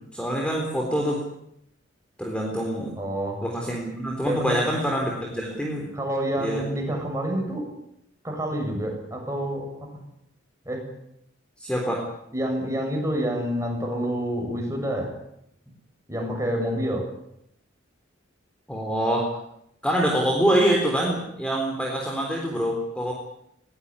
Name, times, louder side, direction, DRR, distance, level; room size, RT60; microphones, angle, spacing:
voice 1, 0.1-1.2 2.2-2.9 3.4-5.9 6.4-6.6 11.6-12.0 18.7-19.3 19.8-23.1, equal, 5° left, 0 dB, 3.8 m, -25 dB
voice 2, 3.0-3.4 4.3-4.6 5.9-7.6 8.2-9.6 10.7-10.8 12.3-15.1 16.1-17.0, equal, 15° right, 1 dB, 7.3 m, -28 dB
20.5 x 18.5 x 9.8 m, 0.77 s
head